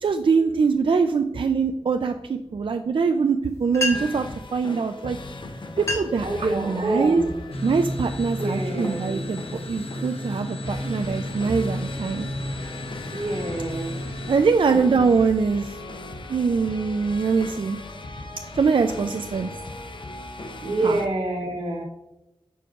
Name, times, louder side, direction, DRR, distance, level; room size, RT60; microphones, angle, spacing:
voice 1, 0.0-4.3 4.5-5.2 5.8-7.2 7.6-12.3 14.0-15.8 16.3-17.8 18.5-19.5 20.8-21.0, right 5 dB, 60° right, 6 dB, 0.3 m, -23 dB
sound 1, 3.5-3.6 3.7-4.3 5.2-5.3 5.7-6.3 6.8-7.1 7.8-8.0 8.6-9.8, left 2 dB, 30° left, 1.0 m, -31 dB
sound 2, 3.7-21.1, left 2 dB, 55° left, 0.6 m, -39 dB
voice 2, 6.2-7.3 8.4-9.2 13.1-13.9 14.6-15.1 20.6-21.8, right 2 dB, 90° right, 0 dB, 1.2 m, -27 dB
sound 3, 7.5-14.4, left 1 dB, 85° left, 0.8 m, -32 dB
6.9 x 5.8 x 2.4 m, 0.95 s
wide cardioid pair, 80°, 10 cm